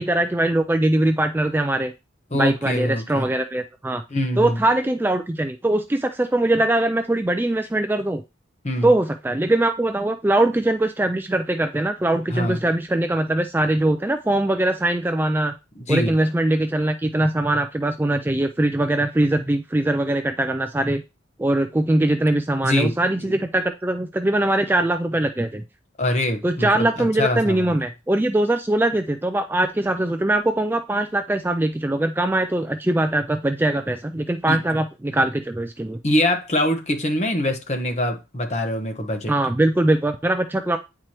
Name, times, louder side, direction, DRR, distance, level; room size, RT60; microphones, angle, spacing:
voice 1, 0.0-1.9 2.3-4.0 4.4-8.2 8.8-15.5 15.9-21.0 21.4-25.6 26.4-36.0 39.3-40.8, right 1 dB, 10° right, 0.3 m, -21 dB
voice 2, 2.3-3.2 4.1-4.6 8.6-8.9 12.3-12.6 15.8-16.1 22.6-22.9 26.0-27.7 34.5-34.6 36.0-39.3, left 1 dB, 35° left, 1.1 m, -23 dB
8.7 x 4.7 x 3.0 m
head